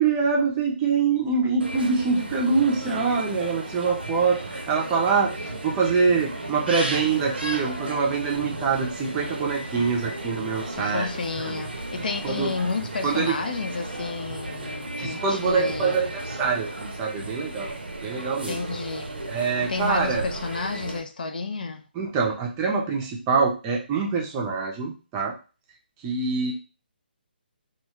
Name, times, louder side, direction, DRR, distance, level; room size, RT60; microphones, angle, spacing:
voice 1, 0.0-11.1 11.4-11.5 12.2-12.5 13.0-13.4 15.0-17.7 18.0-18.6 19.3-20.3 22.0-25.3 26.0-26.5, right 5 dB, 20° right, 0.5 m, -24 dB
sound 1, 1.6-21.0, right 2 dB, 75° right, 0.6 m, -34 dB
voice 2, 10.7-15.9 18.5-19.1 19.6-21.8, left 4 dB, 55° left, 0.4 m, -31 dB
2.4 x 2.3 x 2.9 m
figure-of-eight pair, 140°, 6 cm